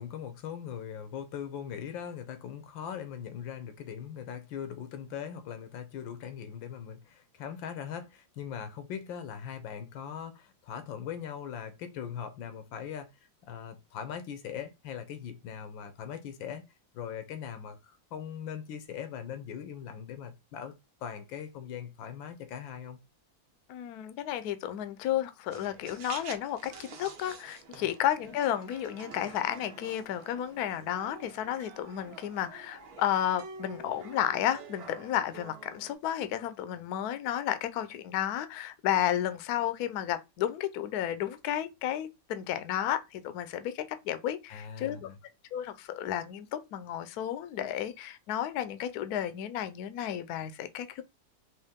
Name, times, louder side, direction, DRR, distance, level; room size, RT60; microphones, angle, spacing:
voice 1, 0.0-13.1 13.4-16.7 16.9-20.7 21.0-23.0 27.8-27.9 44.5-45.2, left 8 dB, 85° left, 1.5 m, -40 dB
voice 2, 23.7-45.1 45.5-51.0, left 11 dB, 70° left, 1.0 m, -32 dB
sound 1, 25.5-35.9, right 4 dB, 60° right, 1.2 m, -48 dB
4.5 x 3.0 x 3.6 m
omnidirectional pair, 2.1 m